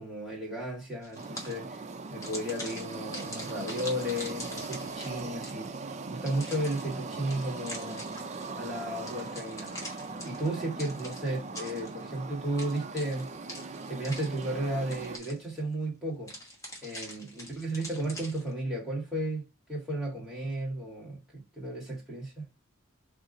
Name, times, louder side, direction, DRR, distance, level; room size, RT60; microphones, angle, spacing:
voice 1, 0.0-5.7 6.1-8.0 8.5-9.8 10.2-13.3 13.9-16.3 16.8-19.4 19.7-22.4, right 1 dB, ahead, 2.1 m, -34 dB
sound 1, 1.0-1.8 2.2-5.8 6.3-8.5 9.1-12.2 12.6-14.6 14.9-15.6 16.3-18.5, left 1 dB, 15° left, 1.2 m, -44 dB
sound 2, 1.1-15.2, right 3 dB, 30° right, 0.4 m, -40 dB
3.7 x 2.8 x 4.1 m
head